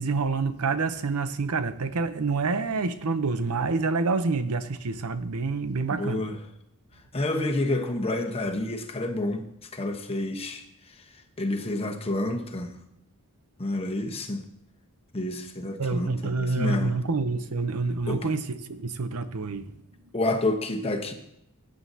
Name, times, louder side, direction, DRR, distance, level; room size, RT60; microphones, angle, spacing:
voice 1, 0.0-6.2 15.8-20.1, right 4 dB, 85° right, 0.7 m, -27 dB
voice 2, 5.9-6.4 7.1-9.5 9.7-11.0 11.4-12.7 13.6-14.4 15.1-16.9 18.1-18.3 20.1-21.1, left 2 dB, 25° left, 1.0 m, -29 dB
15.0 x 9.4 x 2.8 m
head